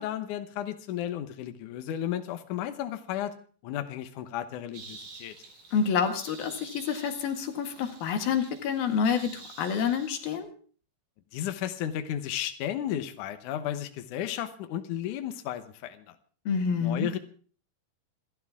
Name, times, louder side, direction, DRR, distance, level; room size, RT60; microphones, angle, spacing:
voice 1, 0.0-3.4 3.6-5.3 11.3-16.2 16.8-17.2, left 11 dB, 65° left, 8 dB, 2.4 m, -34 dB
sound 1, 4.7-10.4, right 3 dB, 60° right, 5.8 m, -49 dB
voice 2, 5.7-10.5 16.5-17.1, left 6 dB, 85° left, 6 dB, 3.8 m, -28 dB
27.5 x 12.0 x 3.6 m, 0.42 s
omnidirectional pair, 4.1 m